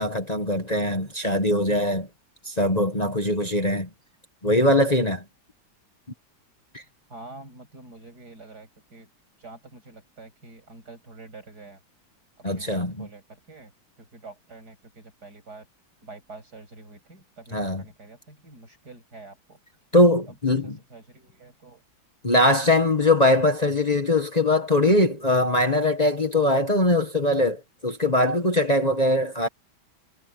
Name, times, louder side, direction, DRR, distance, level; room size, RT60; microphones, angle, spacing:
voice 1, 0.0-2.1 2.4-3.9 4.4-5.2 6.7-6.8 12.4-13.1 17.5-17.8 19.9-20.8 22.2-29.5, left 1 dB, 25° left, 1.7 m, -21 dB
voice 2, 7.1-9.1 9.4-11.8 12.5-13.7 14.0-15.7 16.0-19.6 20.3-20.4 20.6-21.8, right 3 dB, 65° right, 8.2 m, -46 dB
omnidirectional pair, 1.8 m